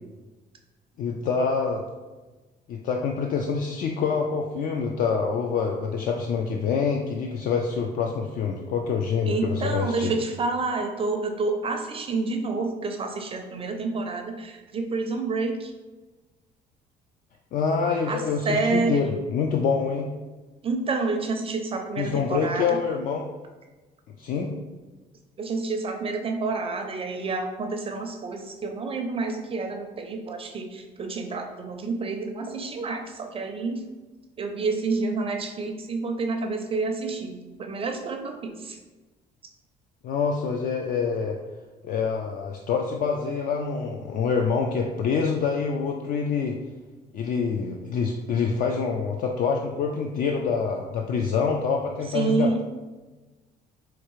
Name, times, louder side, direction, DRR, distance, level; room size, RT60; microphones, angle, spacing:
voice 1, 1.0-1.8 2.7-10.1 17.5-20.1 22.0-23.3 24.2-24.5 40.0-41.4 41.8-46.6 47.1-52.6, left 5 dB, 55° left, 1 dB, 0.4 m, -26 dB
voice 2, 9.2-15.7 18.1-19.2 20.6-22.8 25.4-33.8 34.4-38.8 52.1-52.6, right 3 dB, 35° right, 4 dB, 0.4 m, -29 dB
4.5 x 2.4 x 3.1 m, 1.2 s
cardioid pair, 110°, 17 cm